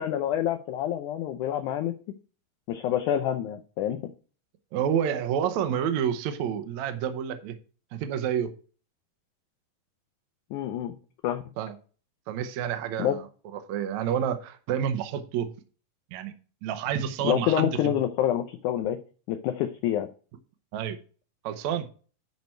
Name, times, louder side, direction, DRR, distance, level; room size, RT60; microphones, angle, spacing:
voice 1, 0.0-2.0 2.7-4.0 10.5-11.0 11.2-11.4 13.0-13.2 17.2-19.0 19.3-20.1, left 11 dB, 75° left, 6 dB, 2.0 m, -27 dB
voice 2, 4.7-7.6 7.9-8.5 11.6-11.7 12.3-13.3 13.5-15.5 16.1-16.3 16.6-17.9 20.7-21.0 21.4-21.9, right 9 dB, 70° right, 7 dB, 2.0 m, -29 dB
10.5 x 5.1 x 4.5 m, 0.38 s
omnidirectional pair, 3.9 m